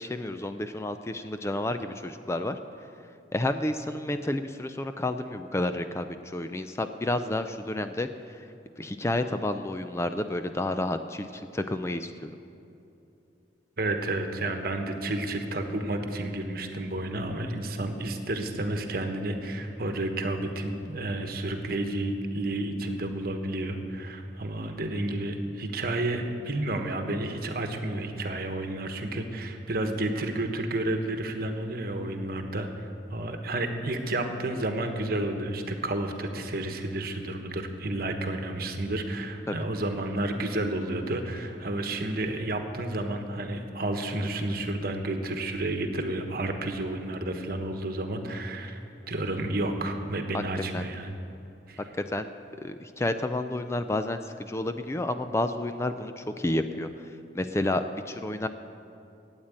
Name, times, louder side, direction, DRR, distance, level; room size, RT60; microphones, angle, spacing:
voice 1, 0.0-2.6 3.3-8.1 8.8-12.3 39.5-39.6 50.3-50.4 50.7-50.8 52.1-52.3 52.6-56.9 57.3-58.5, left 1 dB, 15° left, 9 dB, 0.4 m, -30 dB
voice 2, 13.8-48.8 49.1-51.1 51.7-51.8, right 1 dB, 55° right, 6 dB, 1.2 m, -31 dB
13.0 x 8.9 x 8.8 m, 2.8 s
head